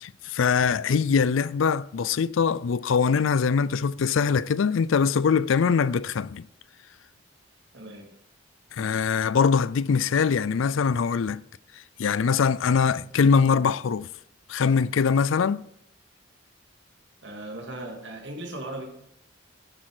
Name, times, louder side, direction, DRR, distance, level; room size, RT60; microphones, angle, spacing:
voice 1, 0.0-6.4 8.8-11.4 12.0-14.1 14.5-15.6, left 6 dB, 80° left, 0.4 m, -22 dB
voice 2, 7.7-8.1 17.2-18.9, right 1 dB, 65° right, 2.5 m, -37 dB
10.0 x 8.3 x 4.9 m
head